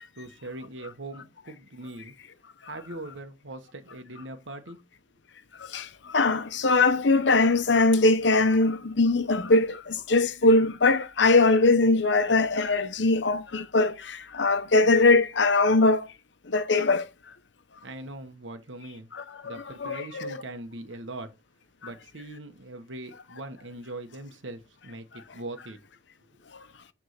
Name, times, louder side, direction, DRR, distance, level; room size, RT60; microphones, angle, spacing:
voice 1, 0.2-2.1 2.7-4.8 17.8-19.1 19.4-21.3 21.8-25.8, right 2 dB, 85° right, 1.3 m, -41 dB
voice 2, 5.7-16.1 16.5-17.1 19.1-20.4, left 3 dB, 70° left, 0.9 m, -22 dB
9.6 x 3.6 x 6.5 m
head